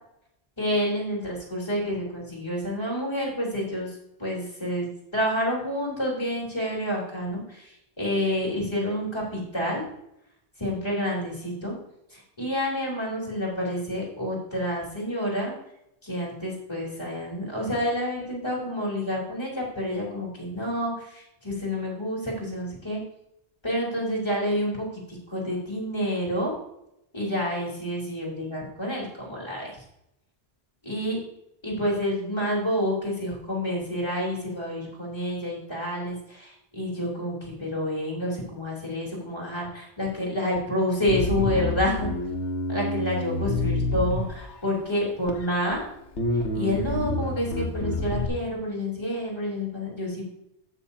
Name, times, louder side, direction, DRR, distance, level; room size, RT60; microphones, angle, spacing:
voice 1, 0.6-4.9 5.1-9.9 10.6-11.8 12.1-15.5 16.0-23.0 23.6-26.5 27.1-29.7 30.8-31.2 31.6-42.1 42.7-45.8 46.5-50.2, equal, 25° left, -4 dB, 3.6 m, -29 dB
Bass guitar, 41.1-44.7 45.3-45.8 46.2-48.3, left 2 dB, 80° left, 1.5 m, -28 dB
15.5 x 6.2 x 2.8 m, 0.80 s
omnidirectional pair, 1.2 m